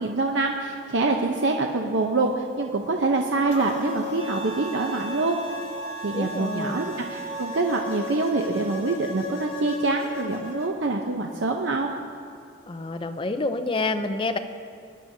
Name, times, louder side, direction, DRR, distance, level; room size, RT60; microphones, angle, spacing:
voice 1, 0.0-5.4 6.0-12.0, right 3 dB, 75° right, 2 dB, 0.7 m, -25 dB
sound 1, 3.5-10.7, left 3 dB, 85° left, 1.3 m, -37 dB
Wind instrument woodwind instrument, 4.2-7.8, right 3 dB, 30° right, 0.5 m, -37 dB
voice 2, 6.1-6.8 12.7-14.4, left 2 dB, 25° left, 8 dB, 0.5 m, -28 dB
19.5 x 10.0 x 2.7 m, 2.4 s
head